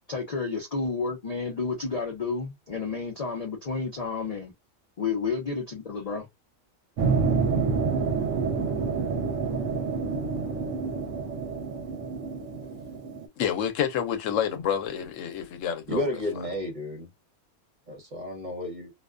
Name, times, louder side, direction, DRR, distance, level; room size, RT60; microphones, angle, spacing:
voice 1, 0.1-4.5 5.0-6.3, left 4 dB, 45° left, 0.5 m, -31 dB
sound 1, 7.0-13.3, right 5 dB, 75° right, 1.0 m, -28 dB
voice 2, 13.4-16.1, left 9 dB, 80° left, 0.9 m, -28 dB
voice 3, 15.9-17.1 17.9-18.9, left 1 dB, 40° right, 1.1 m, -32 dB
2.4 x 2.2 x 2.3 m
omnidirectional pair, 1.3 m